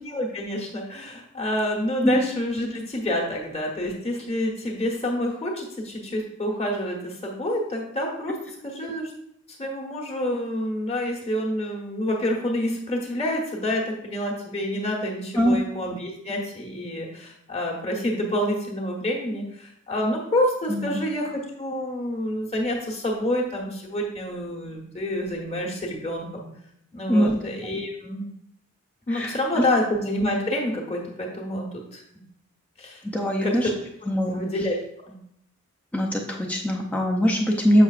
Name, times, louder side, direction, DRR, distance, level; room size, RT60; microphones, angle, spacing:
voice 1, 0.0-9.1 9.6-26.5 26.9-28.3 29.1-32.0 32.8-33.0 33.4-33.7 34.3-34.8 35.0-35.2, left 1 dB, 30° left, -1 dB, 1.1 m, -28 dB
voice 2, 33.0-33.7 34.1-34.4 35.9-37.8, equal, 5° left, 0 dB, 0.5 m, -22 dB
7.1 x 5.6 x 2.4 m, 0.73 s
head